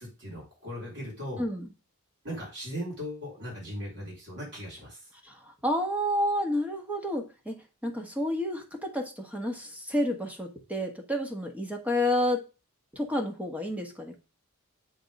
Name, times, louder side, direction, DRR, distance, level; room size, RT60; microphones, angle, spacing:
voice 1, 0.0-1.5 2.2-5.1, equal, 55° right, -4 dB, 4.0 m, -38 dB
voice 2, 1.4-1.7 5.2-12.4 12.9-14.2, left 1 dB, 5° right, 2 dB, 1.2 m, -30 dB
7.8 x 3.6 x 5.2 m, 0.32 s
head